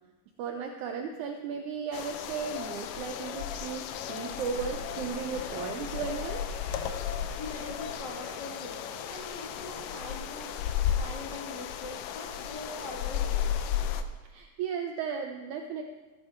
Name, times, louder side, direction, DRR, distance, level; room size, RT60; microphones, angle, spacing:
voice 1, 0.4-6.5 14.2-15.8, right 6 dB, 85° right, 4 dB, 1.7 m, -35 dB
sound 1, 1.9-14.0, left 9 dB, 80° left, 2.0 m, -34 dB
Aircraft / Engine, 3.6-11.5, left 1 dB, 40° left, 2.8 m, -51 dB
voice 2, 7.4-10.6 11.0-13.6, left 2 dB, 55° left, -3 dB, 1.2 m, -42 dB
14.5 x 9.5 x 4.4 m, 1.2 s
omnidirectional pair, 4.3 m